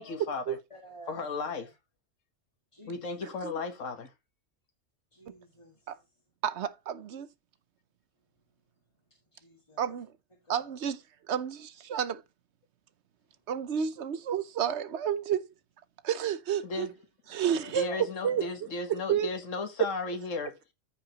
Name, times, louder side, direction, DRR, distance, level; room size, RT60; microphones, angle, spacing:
voice 1, 0.0-0.6 1.1-1.7 2.9-4.1 16.6-16.9 17.7-20.5, left 3 dB, 85° left, 1.6 m, -35 dB
voice 2, 0.7-1.2 2.7-3.3 5.1-6.0 9.1-9.8 10.4-10.8 17.3-18.5, equal, 25° left, 1.9 m, -52 dB
voice 3, 6.4-7.3 9.8-10.1 10.5-11.0 11.3-12.2 13.5-15.4 16.0-16.9 17.3-17.9 18.2-19.3, right 8 dB, 65° right, 1.0 m, -31 dB
14.5 x 5.0 x 2.9 m
omnidirectional pair, 1.3 m